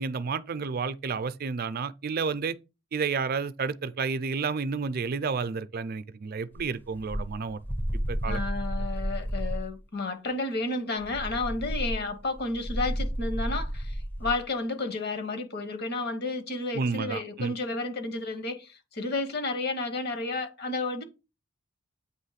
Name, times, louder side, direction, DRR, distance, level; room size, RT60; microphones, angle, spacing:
voice 1, 0.0-2.6 2.9-7.6 8.1-8.4 16.7-17.5, right 5 dB, 50° right, 0.5 m, -31 dB
sound 1, 6.6-9.8 11.0-14.5, equal, 10° left, 0.5 m, -32 dB
voice 2, 8.2-21.0, left 3 dB, 55° left, 1.2 m, -32 dB
8.1 x 3.0 x 5.7 m
head